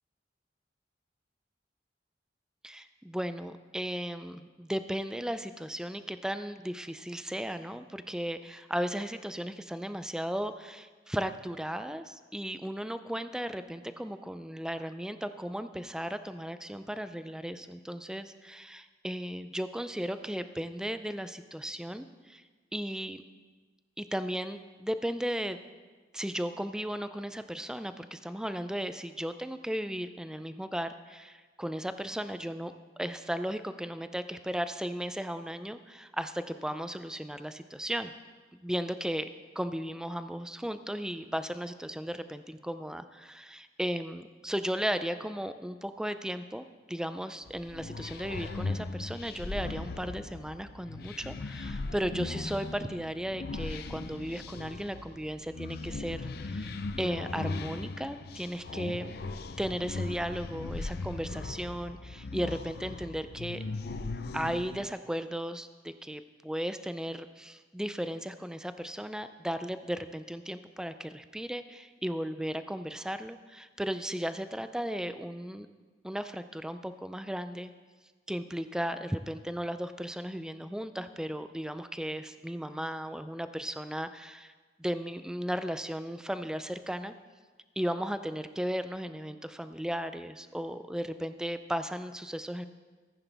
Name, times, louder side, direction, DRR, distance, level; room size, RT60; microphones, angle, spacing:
voice 1, 2.6-22.4 22.7-23.2 24.0-25.6 26.1-38.1 38.5-39.3 39.6-59.1 59.6-63.6 64.3-75.7 76.0-77.7 78.3-84.5 84.8-87.1 87.8-92.7, equal, 5° right, 11 dB, 0.4 m, -35 dB
sound 1, 47.5-64.9, left 3 dB, 60° left, 0.5 m, -38 dB
14.5 x 9.9 x 3.5 m, 1.4 s
head